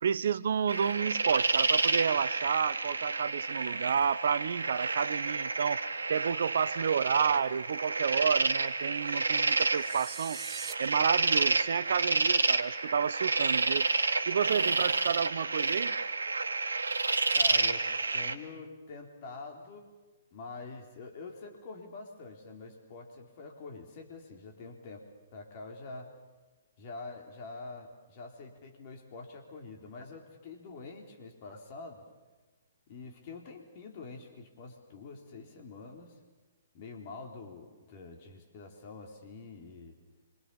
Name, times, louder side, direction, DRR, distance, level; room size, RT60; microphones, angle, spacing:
voice 1, 0.0-5.8 6.1-10.4 10.8-13.9 14.3-16.0, right 7 dB, 60° right, 0.8 m, -30 dB
sound 1, 0.7-18.4, right 3 dB, 75° right, 1.5 m, -30 dB
sound 2, 9.8-10.7, right 7 dB, 20° right, 1.9 m, -42 dB
voice 2, 17.3-17.9 18.1-19.9 20.3-26.1 26.8-32.0 32.9-36.2 36.7-40.0, left 3 dB, 40° left, 4.1 m, -46 dB
27.0 x 25.0 x 7.1 m
figure-of-eight pair, 125°, 0 cm